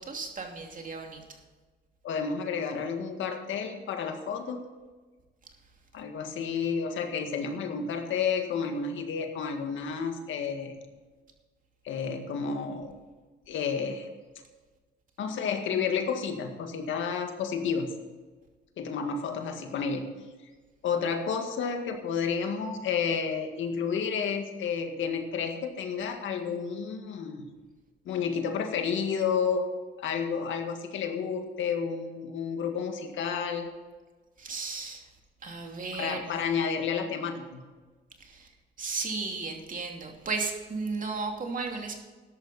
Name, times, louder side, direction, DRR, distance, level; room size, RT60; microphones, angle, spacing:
voice 1, 0.0-1.4 34.4-35.1 35.4-36.4 38.2-42.0, right 4 dB, 40° right, 2 dB, 2.7 m, -35 dB
voice 2, 2.0-4.6 5.9-10.7 11.9-12.9 13.5-14.1 15.2-17.9 18.8-20.1 20.8-27.5 28.1-29.6 30.0-33.7 35.9-37.6, left 6 dB, 75° left, 5 dB, 1.9 m, -31 dB
14.0 x 11.0 x 4.3 m, 1.3 s
cardioid pair, 90°, 20 cm